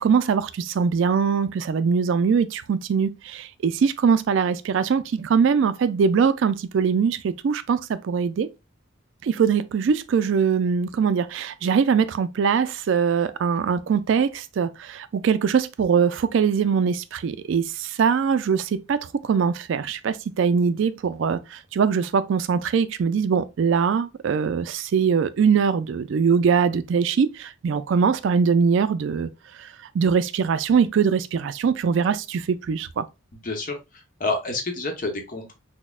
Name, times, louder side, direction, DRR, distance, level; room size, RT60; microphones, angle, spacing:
voice 1, 0.0-8.5 9.2-29.3 29.6-33.1, right 6 dB, 65° right, 0.3 m, -22 dB
voice 2, 33.4-35.5, left 2 dB, 40° left, 0.8 m, -29 dB
6.0 x 2.1 x 2.3 m
head